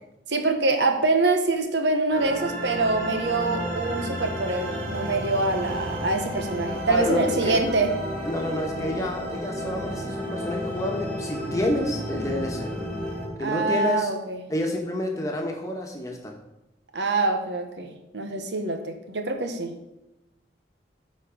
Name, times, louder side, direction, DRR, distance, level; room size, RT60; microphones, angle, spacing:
voice 1, 0.3-7.9 13.4-14.4 16.9-19.8, right 3 dB, 70° right, 5 dB, 1.2 m, -25 dB
sound 1, 2.1-13.3, equal, 50° right, 3.4 m, -32 dB
voice 2, 6.9-7.6 8.3-12.7 13.4-14.1 14.5-16.3, left 1 dB, 15° left, 1 dB, 1.3 m, -29 dB
13.5 x 4.5 x 5.2 m, 0.95 s
head